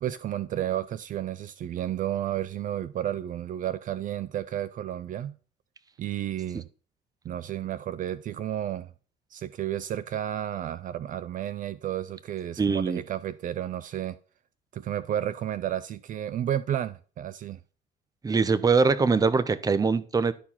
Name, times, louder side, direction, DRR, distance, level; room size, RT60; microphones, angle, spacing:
voice 1, 0.0-5.4 6.0-6.7 7.2-8.9 9.3-14.2 14.7-17.6, right 11 dB, 50° right, 0.5 m, -32 dB
voice 2, 12.6-13.0 18.2-20.3, right 4 dB, 20° right, 0.8 m, -23 dB
12.0 x 4.6 x 5.7 m
cardioid pair, 110°, 17 cm